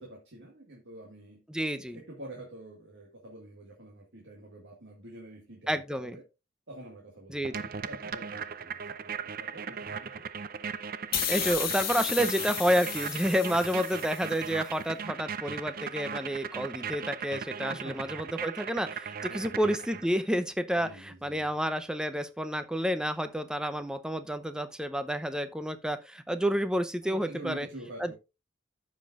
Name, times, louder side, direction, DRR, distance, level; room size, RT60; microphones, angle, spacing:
voice 1, 0.0-1.4 1.8-6.2 6.7-10.2 13.6-13.7 17.7-18.1 19.2-19.6 20.8-21.5 27.0-28.1, right 1 dB, 75° right, 1.9 m, -47 dB
voice 2, 1.5-2.0 5.7-6.2 7.3-7.5 11.3-27.7 28.0-28.1, equal, 5° right, 0.7 m, -30 dB
sound 1, 7.4-20.2, right 6 dB, 55° right, 0.5 m, -38 dB
sound 2, 11.1-14.5, left 9 dB, 55° left, 1.8 m, -33 dB
14.5 x 5.3 x 2.5 m
head